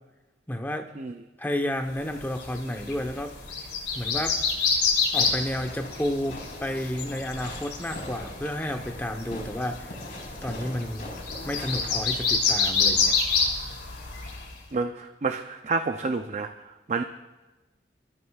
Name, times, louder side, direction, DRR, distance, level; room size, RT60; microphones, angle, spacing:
voice 1, 0.5-0.9 1.4-3.4 3.9-4.4 5.1-9.9 10.4-11.1 11.4-13.2, left 1 dB, 10° left, 4 dB, 0.9 m, -31 dB
sound 1, 2.1-14.6, left 4 dB, 75° left, 3.0 m, -28 dB
Fireworks, 5.1-12.5, left 1 dB, 50° left, 4.4 m, -42 dB
voice 2, 14.7-17.0, right 4 dB, 40° right, 6 dB, 0.5 m, -29 dB
26.0 x 13.0 x 2.4 m, 1.1 s
head